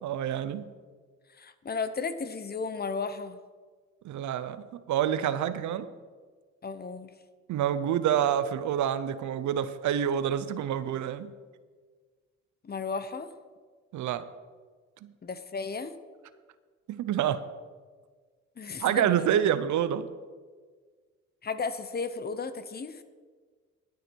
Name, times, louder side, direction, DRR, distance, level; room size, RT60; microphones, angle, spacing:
voice 1, 0.0-0.7 4.0-5.9 7.5-11.3 13.9-14.3 15.0-15.1 16.9-17.5 18.8-20.1, right 10 dB, 70° right, 14 dB, 0.7 m, -27 dB
voice 2, 1.4-3.4 6.6-7.1 12.6-13.3 15.2-15.9 18.6-19.3 21.4-23.0, left 4 dB, 30° left, 12 dB, 0.8 m, -34 dB
11.5 x 9.7 x 4.6 m, 1.5 s
cardioid pair, 90°, 30 cm